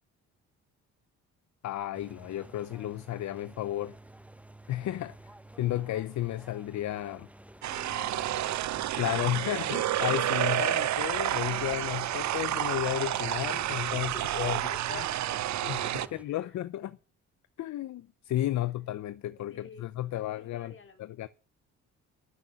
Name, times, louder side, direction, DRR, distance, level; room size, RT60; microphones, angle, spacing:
voice 1, 1.6-3.9 4.7-5.3 5.6-7.3 8.9-14.6 14.9-15.0 15.7-15.8 16.1-17.0 17.6-20.7 21.0-21.3, left 13 dB, 65° left, 0.7 m, -33 dB
sound 1, 1.9-16.2, right 1 dB, 5° right, 1.3 m, -51 dB
sound 2, 7.6-16.1, right 13 dB, 65° right, 0.7 m, -30 dB
voice 2, 7.7-8.6 13.9-16.6 18.5-18.7 19.2-21.3, left 5 dB, 40° left, 3.8 m, -50 dB
12.5 x 6.9 x 10.0 m
cardioid pair, 90°, 30 cm